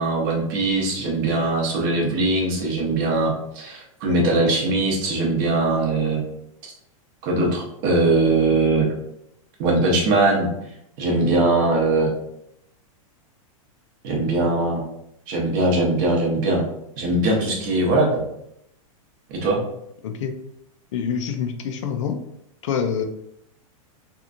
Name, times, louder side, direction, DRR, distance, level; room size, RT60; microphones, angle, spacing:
voice 1, 0.0-6.2 7.2-8.9 9.6-10.5 11.0-12.1 14.0-14.8 15.3-16.6 17.0-18.2 19.3-19.6, right 2 dB, 35° right, -1 dB, 0.7 m, -21 dB
voice 2, 20.0-20.3 20.9-22.2 22.6-23.0, left 7 dB, 60° left, 6 dB, 0.4 m, -26 dB
2.9 x 2.4 x 2.4 m, 0.77 s
supercardioid pair, 165°, 18 cm